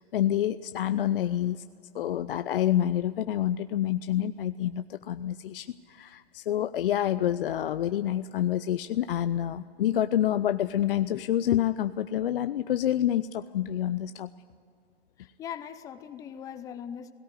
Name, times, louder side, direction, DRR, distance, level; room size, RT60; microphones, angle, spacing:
voice 1, 0.0-1.6 1.9-14.3, left 11 dB, 55° left, 12 dB, 0.6 m, -27 dB
voice 2, 15.2-17.1, left 8 dB, 10° left, 12 dB, 0.5 m, -40 dB
17.5 x 17.5 x 9.7 m, 2.5 s
hypercardioid pair, 140°, 33 cm